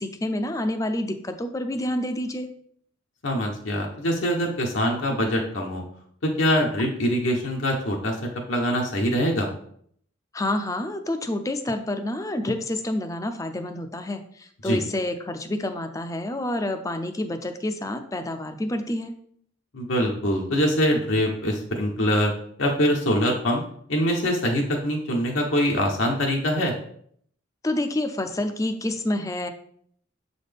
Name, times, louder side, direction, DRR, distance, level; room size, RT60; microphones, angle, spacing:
voice 1, 0.0-2.5 10.3-19.1 27.6-29.5, left 1 dB, 15° left, 7 dB, 0.4 m, -28 dB
voice 2, 3.2-5.8 6.2-8.2 8.5-9.5 14.6-14.8 19.7-22.3 22.6-23.6 23.9-26.7, equal, 75° left, 0 dB, 0.9 m, -23 dB
7.3 x 4.1 x 3.4 m, 0.64 s
head